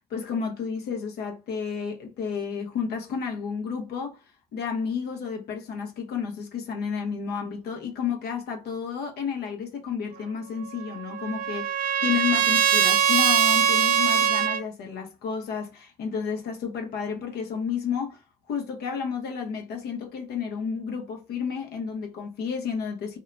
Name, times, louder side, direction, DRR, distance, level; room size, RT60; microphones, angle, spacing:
voice 1, 0.1-4.2 4.5-18.2 18.5-23.2, left 6 dB, 70° left, 0.9 m, -31 dB
Trumpet, 10.7-14.6, right 8 dB, 60° right, 0.6 m, -22 dB
2.7 x 2.2 x 3.9 m
cardioid pair, 110°, 17 cm